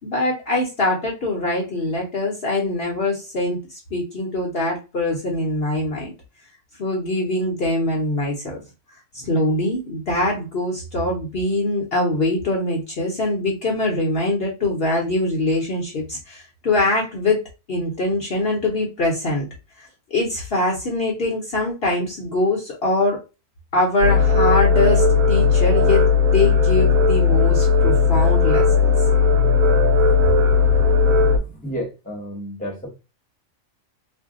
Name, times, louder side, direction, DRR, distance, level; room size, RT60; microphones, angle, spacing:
voice 1, 0.0-6.1 6.8-8.6 9.1-17.4 17.7-19.5 19.8-23.2 23.7-28.9, left 2 dB, 50° left, 0.9 m, -23 dB
sound 1, 24.0-31.4, left 4 dB, 90° right, 1.0 m, -16 dB
voice 2, 31.3-32.9, equal, 5° left, 0.8 m, -32 dB
2.6 x 2.1 x 3.6 m
omnidirectional pair, 1.4 m